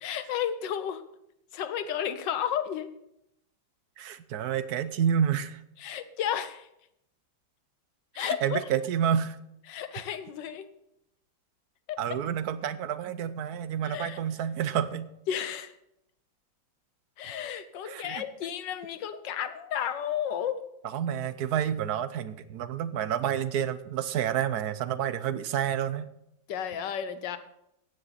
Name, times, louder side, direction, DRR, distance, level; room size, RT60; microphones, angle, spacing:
voice 1, 0.0-1.0 1.5-2.9 5.8-6.7 8.1-8.6 9.7-10.7 11.9-12.2 13.8-14.2 15.3-15.7 17.2-20.6 26.5-27.4, left 9 dB, 70° left, 11 dB, 1.6 m, -32 dB
voice 2, 4.0-5.6 8.2-9.4 12.0-15.1 17.8-18.2 20.9-26.1, right 9 dB, 65° right, 14 dB, 1.1 m, -29 dB
14.5 x 10.0 x 4.2 m, 0.80 s
omnidirectional pair, 2.1 m